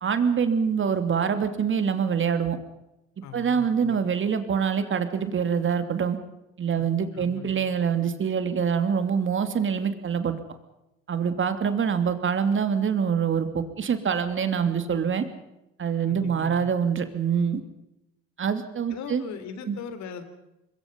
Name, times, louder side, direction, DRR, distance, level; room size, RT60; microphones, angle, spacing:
voice 1, 0.0-2.6 3.3-6.2 6.6-10.4 11.1-15.3 15.8-17.6 18.4-19.2 19.7-19.8, right 7 dB, 40° right, 9 dB, 2.9 m, -25 dB
voice 2, 3.2-4.1 6.7-7.6 16.1-16.7 18.9-20.2, left 7 dB, 65° left, 11 dB, 3.3 m, -40 dB
26.0 x 21.5 x 5.4 m, 0.91 s
hypercardioid pair, 65°, 30 cm